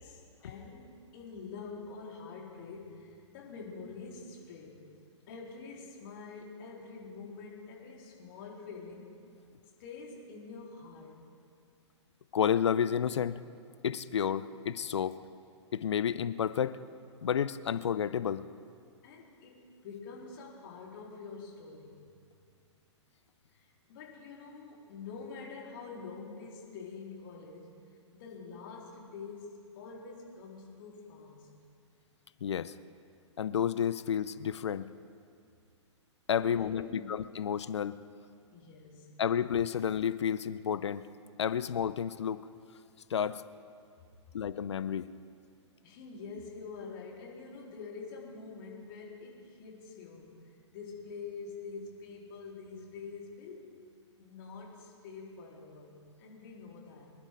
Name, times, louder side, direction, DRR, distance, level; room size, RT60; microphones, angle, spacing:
voice 1, 0.0-4.8 5.3-9.2 9.8-11.2 19.0-22.0 23.5-27.8 28.1-31.5 36.4-37.1 38.5-39.2 45.8-50.3 50.7-53.7 54.2-57.1, left 4 dB, 45° left, -3 dB, 3.9 m, -46 dB
voice 2, 12.3-13.4 13.8-15.2 15.7-16.8 17.2-18.4 32.4-32.7 33.4-34.9 36.3-38.0 39.2-41.0 41.4-42.4 43.1-43.4 44.3-45.1, left 8 dB, 65° left, 15 dB, 0.6 m, -31 dB
26.0 x 11.5 x 3.8 m, 2.3 s
figure-of-eight pair, 120°, 16 cm